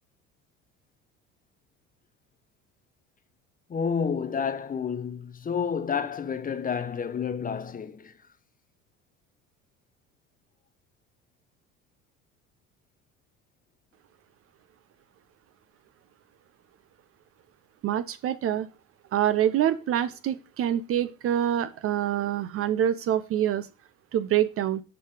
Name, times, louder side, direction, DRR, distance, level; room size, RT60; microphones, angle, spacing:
voice 1, 3.7-8.1, left 6 dB, 20° left, 0.7 m, -30 dB
voice 2, 17.8-18.7 19.1-23.7 24.1-24.8, right 11 dB, 35° right, 0.5 m, -26 dB
6.8 x 5.4 x 4.7 m
figure-of-eight pair, 60°, 39 cm